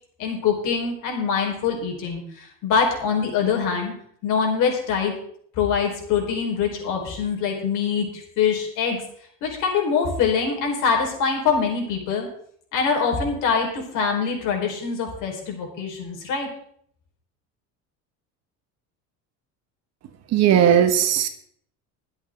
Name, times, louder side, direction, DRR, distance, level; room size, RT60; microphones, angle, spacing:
voice 1, 0.2-3.9 4.2-5.1 5.5-8.1 8.4-9.0 9.4-12.3 12.7-16.5, left 6 dB, 60° left, 0 dB, 5.0 m, -24 dB
voice 2, 20.3-21.3, right 9 dB, 45° right, 8 dB, 1.5 m, -17 dB
22.5 x 8.0 x 3.9 m, 0.65 s
cardioid pair, 145°, 35 cm